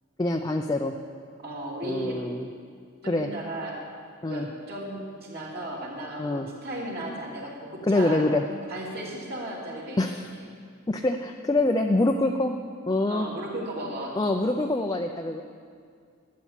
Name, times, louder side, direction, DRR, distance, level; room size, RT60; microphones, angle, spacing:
voice 1, 0.2-0.9 1.8-2.5 3.1-3.3 4.2-4.5 6.2-6.5 7.9-8.4 10.0-10.2 10.9-12.5 12.9-13.3 14.2-15.4, left 2 dB, 20° left, 3 dB, 0.4 m, -25 dB
voice 2, 1.4-2.2 3.0-3.8 4.2-8.2 8.7-10.5 13.1-14.2, right 1 dB, 50° right, -4 dB, 2.9 m, -35 dB
12.0 x 8.4 x 7.5 m, 2.2 s
head